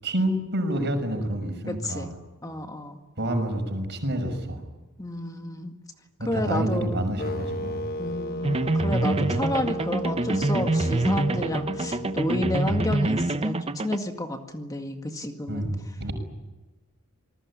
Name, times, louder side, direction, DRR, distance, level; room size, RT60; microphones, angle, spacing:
voice 1, 0.0-2.1 3.2-4.6 6.2-7.8 9.2-9.4 15.5-16.1, right 1 dB, 55° right, 7 dB, 6.2 m, -28 dB
voice 2, 1.7-2.1 2.4-3.0 5.0-5.8 6.3-7.1 8.0-15.7, left 1 dB, 15° left, 4 dB, 2.0 m, -30 dB
sound 1, 7.2-13.3, equal, 45° left, 1.4 m, -35 dB
sound 2, 8.4-14.0, right 2 dB, 30° right, 0.8 m, -26 dB
28.0 x 20.0 x 9.9 m, 1.2 s
head